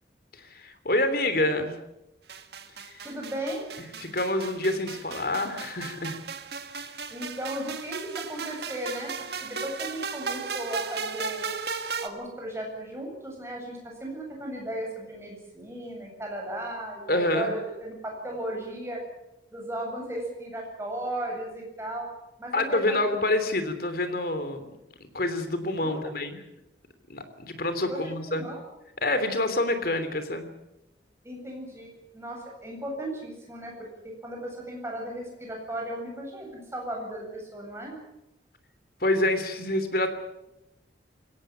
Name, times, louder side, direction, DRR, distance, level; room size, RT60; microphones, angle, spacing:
voice 1, 0.3-1.7 2.8-3.0 3.8-6.2 17.1-17.5 22.5-24.7 25.0-26.4 27.1-28.4 29.0-30.5 39.0-40.1, left 1 dB, 55° left, 9 dB, 3.1 m, -27 dB
sound 1, 2.3-12.1, right 5 dB, 60° right, 1.8 m, -36 dB
voice 2, 3.0-3.7 7.1-9.1 9.4-11.5 12.0-19.0 19.5-22.1 22.4-23.0 25.8-26.1 27.9-28.6 31.2-33.7 34.0-38.0, right 1 dB, 15° right, 0 dB, 8.0 m, -36 dB
22.5 x 17.5 x 9.0 m, 0.92 s
head